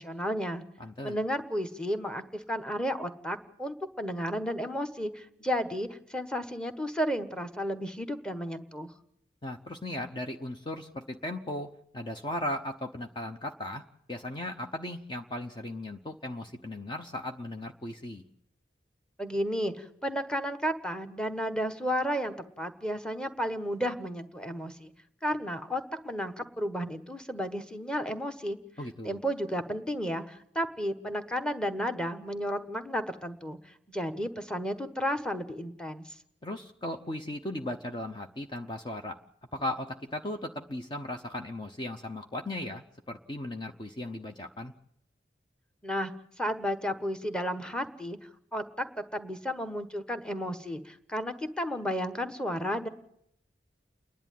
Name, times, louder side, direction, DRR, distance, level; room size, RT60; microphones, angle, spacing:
voice 1, 0.0-0.6 1.0-8.9 19.2-24.9 25.2-28.6 29.0-33.6 33.9-36.1 45.8-48.2 48.5-48.9 49.1-52.9, equal, 5° left, 9 dB, 1.2 m, -33 dB
voice 2, 0.8-1.2 9.4-13.8 14.1-18.2 28.8-29.2 36.4-39.2 39.5-44.7, left 1 dB, 25° left, 4 dB, 0.9 m, -37 dB
29.0 x 11.0 x 9.2 m, 0.75 s
head